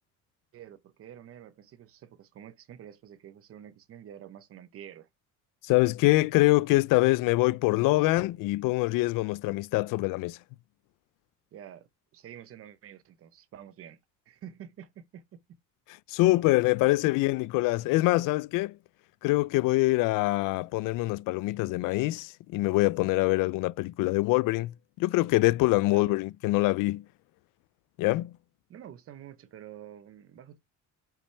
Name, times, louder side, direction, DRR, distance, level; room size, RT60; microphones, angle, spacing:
voice 1, 0.5-5.1 11.5-14.0 14.3-15.6 25.9-26.2 28.7-30.6, right 10 dB, 45° right, 1.0 m, -48 dB
voice 2, 5.6-10.4 16.1-18.8 19.2-27.0 28.0-28.3, left 20 dB, 80° left, 0.5 m, -24 dB
8.6 x 6.1 x 3.4 m
cardioid pair, 165°, 32 cm